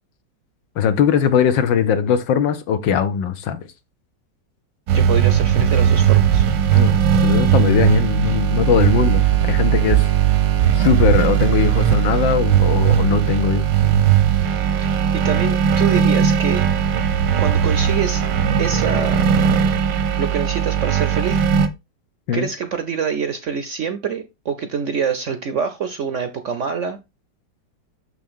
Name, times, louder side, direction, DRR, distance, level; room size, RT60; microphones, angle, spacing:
voice 1, 0.8-3.6 6.7-10.1 10.7-14.1 22.3-22.5, left 8 dB, 85° left, 1.7 m, -20 dB
voice 2, 4.9-6.5 14.8-16.6 17.4-18.2 18.6-19.3 20.2-21.5 22.3-27.0, right 6 dB, 60° right, 0.8 m, -25 dB
sound 1, 4.9-21.7, right 9 dB, 85° right, 1.5 m, -18 dB
6.5 x 6.1 x 3.6 m
omnidirectional pair, 2.0 m